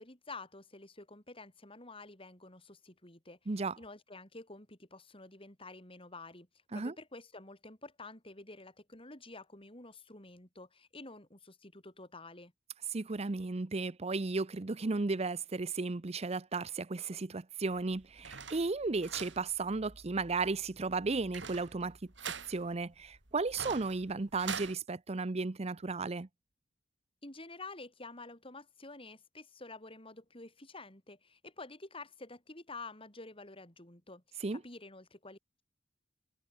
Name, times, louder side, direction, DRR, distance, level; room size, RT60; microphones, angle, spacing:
voice 1, 0.0-6.5 6.7-12.5 27.2-35.6, left 3 dB, 30° left, 6.0 m, -50 dB
voice 2, 3.5-3.8 6.7-6.9 12.9-22.0 22.2-26.3 34.4-34.6, right 3 dB, 35° right, 0.7 m, -34 dB
sound 1, 17.7-24.7, right 6 dB, 80° right, 4.5 m, -46 dB
head